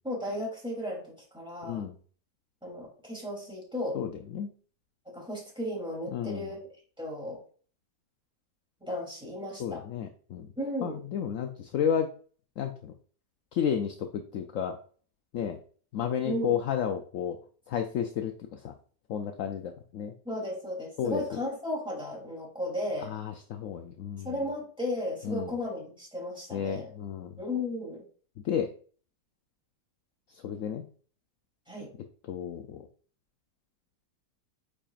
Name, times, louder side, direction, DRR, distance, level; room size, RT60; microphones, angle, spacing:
voice 1, 0.0-1.9 2.6-4.0 5.1-6.6 7.0-7.4 8.8-9.8 10.6-11.0 16.2-16.6 20.2-23.1 24.2-26.9 27.4-28.0 31.7-31.9, left 1 dB, 5° right, -3 dB, 3.0 m, -35 dB
voice 2, 1.6-2.0 3.9-4.5 6.1-6.5 9.6-10.5 10.8-12.1 12.6-12.9 13.5-14.8 15.3-15.6 15.9-17.4 17.7-18.7 19.1-20.1 21.0-21.2 23.0-24.3 25.2-25.5 26.5-27.3 28.4-28.7 30.4-30.8 32.3-32.8, left 8 dB, 70° left, 6 dB, 0.8 m, -32 dB
8.7 x 5.0 x 2.5 m, 0.43 s
omnidirectional pair, 1.9 m